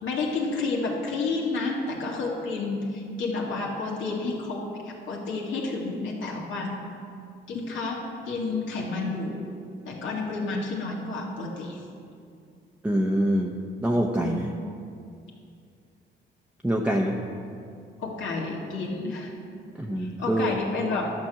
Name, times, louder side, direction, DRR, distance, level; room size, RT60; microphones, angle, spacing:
voice 1, 0.0-6.8 7.5-9.5 9.9-11.8 14.2-14.4 18.0-19.3 20.0-21.1, left 3 dB, 80° left, -2 dB, 2.2 m, -30 dB
voice 2, 12.8-13.5 13.8-14.5 16.6-17.2 19.8-20.5, right 1 dB, 5° right, -1 dB, 0.8 m, -25 dB
11.5 x 5.2 x 7.5 m, 2.4 s
cardioid pair, 90°, 20 cm